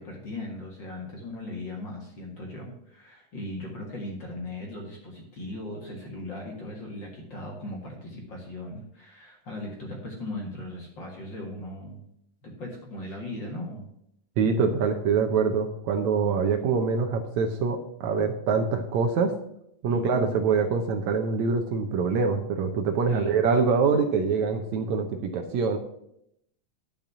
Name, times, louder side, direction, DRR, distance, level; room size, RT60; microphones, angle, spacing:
voice 1, 0.0-12.0 12.4-13.9 19.9-20.4 23.1-23.5, left 1 dB, 40° left, 0 dB, 2.0 m, -38 dB
voice 2, 14.4-19.3 19.8-25.8, right 5 dB, 70° right, 4 dB, 2.0 m, -24 dB
10.5 x 5.4 x 7.2 m, 0.75 s
omnidirectional pair, 3.8 m